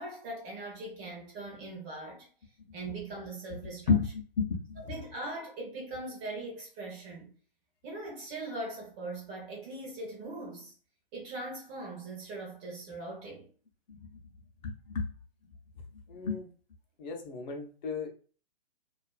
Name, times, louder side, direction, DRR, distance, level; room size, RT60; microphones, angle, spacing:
voice 1, 0.0-2.3 2.7-3.9 4.8-7.3 7.8-10.7 11.1-13.5, right 2 dB, 20° right, 0.6 m, -40 dB
voice 2, 3.9-4.8 13.9-14.0 14.6-15.1 16.1-16.5 17.0-18.1, left 5 dB, 50° left, 0.6 m, -31 dB
2.4 x 2.3 x 2.3 m
hypercardioid pair, 135°, 30 cm